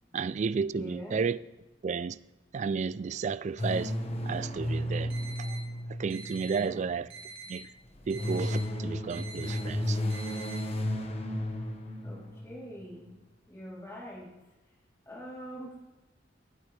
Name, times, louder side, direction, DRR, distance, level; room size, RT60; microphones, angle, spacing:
voice 1, 0.1-1.4 1.8-2.2 2.5-4.0 4.3-5.1 5.4-5.6 5.9-7.1 7.5-7.7 8.1-10.0, right 5 dB, 40° right, 0.3 m, -32 dB
voice 2, 0.7-1.2 6.4-6.9 7.5-7.6 12.0-13.1 13.5-15.8, equal, 15° left, 3.2 m, -46 dB
sound 1, 3.6-7.0 7.9-12.7, left 1 dB, 35° left, 1.2 m, -33 dB
sound 2, 5.1-5.6 6.1-6.6 7.1-7.6 8.1-8.6 9.1-9.6 10.1-10.6, right 5 dB, 80° right, 3.8 m, -45 dB
18.5 x 8.7 x 3.3 m
head